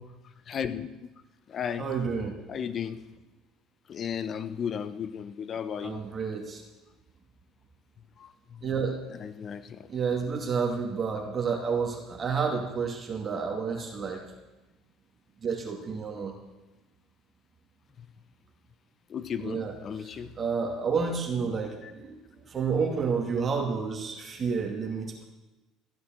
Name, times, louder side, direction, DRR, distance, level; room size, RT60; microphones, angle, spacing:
voice 1, 0.5-1.1 1.5-1.9 2.5-3.0 3.9-6.0 8.2-8.7 9.1-9.9 18.0-18.1 19.1-20.3 21.8-21.9, left 8 dB, 45° left, 12 dB, 1.1 m, -35 dB
voice 2, 1.8-2.3 5.8-6.6 8.6-9.0 9.9-14.2 15.4-16.3 19.4-19.7 20.4-22.2 22.4-25.3, right 5 dB, 35° right, 1 dB, 2.5 m, -30 dB
14.5 x 9.5 x 7.7 m, 1.1 s
hypercardioid pair, 70°, 0 cm